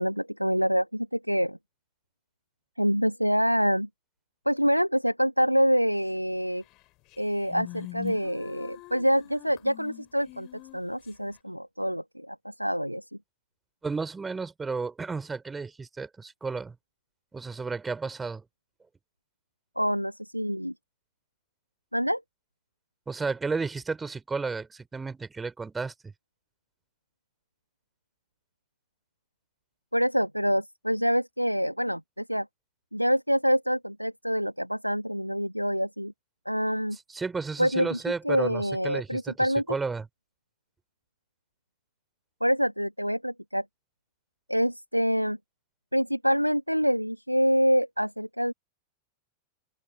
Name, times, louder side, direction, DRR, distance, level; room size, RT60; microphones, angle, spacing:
voice 1, 0.0-1.6 2.8-3.9 4.5-6.6 7.2-10.5 10.7-13.0 19.8-20.7 21.9-22.2 29.9-32.5 32.9-36.1 36.5-37.0 37.6-39.6 42.4-43.7 44.5-45.4 45.9-48.5, equal, 90° right, 1.8 m, -26 dB
sound 1, 6.7-6.8 7.1-11.1, left 22 dB, 40° left, 4.1 m, -43 dB
voice 2, 13.8-16.8 17.3-18.4 23.1-26.1 36.9-40.0, right 4 dB, 15° right, 4.1 m, -33 dB
open air
figure-of-eight pair, 90°, 0 cm